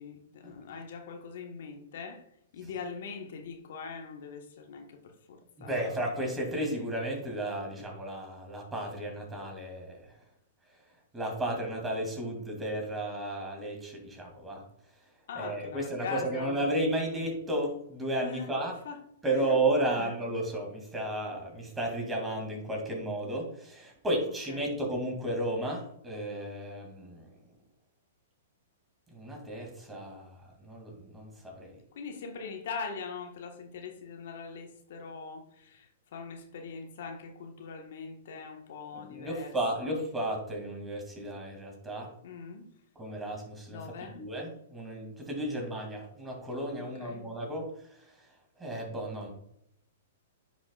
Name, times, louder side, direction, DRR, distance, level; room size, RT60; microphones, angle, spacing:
voice 1, 0.0-2.2 2.5-5.9 15.3-16.6 18.2-18.5 18.8-19.0 19.3-19.5 19.9-20.1 24.5-24.7 31.9-40.0 42.2-42.7 43.7-44.2 46.8-47.2, left 5 dB, 65° left, 1.3 m, -42 dB
voice 2, 5.6-10.1 11.1-14.6 15.4-18.7 19.2-27.3 29.1-31.7 38.9-42.1 43.0-47.7 48.6-49.3, right 1 dB, 10° right, 2.4 m, -33 dB
9.8 x 5.9 x 2.4 m
hypercardioid pair, 120°, 0 cm